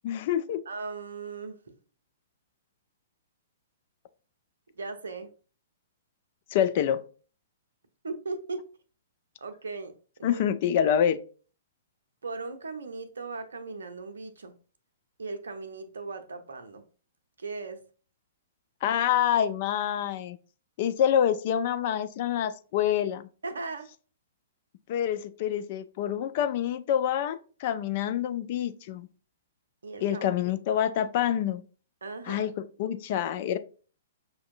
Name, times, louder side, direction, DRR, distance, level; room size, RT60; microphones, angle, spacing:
voice 1, 0.0-0.6 6.5-7.0 10.2-11.2 18.8-20.4 20.8-23.3 24.9-29.1 30.0-31.6 32.3-33.6, left 9 dB, 40° left, 11 dB, 0.3 m, -27 dB
voice 2, 0.7-1.8 4.8-5.3 8.0-8.6 9.4-10.4 12.2-14.5 15.2-16.8 17.4-17.8 23.4-23.9 29.8-30.3 32.0-32.5, right 3 dB, 65° right, 9 dB, 0.6 m, -38 dB
5.6 x 2.6 x 2.5 m, 0.38 s
figure-of-eight pair, 115°, 0 cm